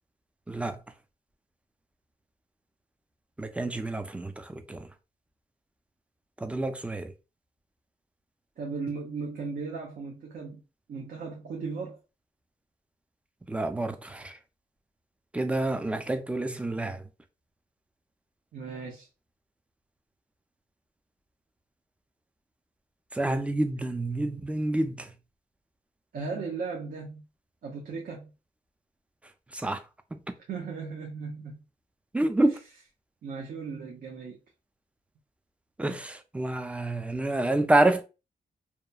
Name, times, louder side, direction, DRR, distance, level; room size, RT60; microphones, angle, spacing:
voice 1, 0.5-0.8 3.4-4.9 6.4-7.1 13.5-14.4 15.3-17.0 23.1-25.1 29.5-29.8 30.1-30.2 32.1-32.6 35.8-38.0, right 2 dB, 10° right, 0.3 m, -28 dB
voice 2, 8.6-10.6 10.9-12.0 18.5-19.1 26.1-27.2 27.6-28.3 30.5-31.6 32.4-32.5 33.2-34.4, right 4 dB, 65° right, 0.7 m, -36 dB
2.9 x 2.1 x 2.3 m
cardioid pair, 85°, 16 cm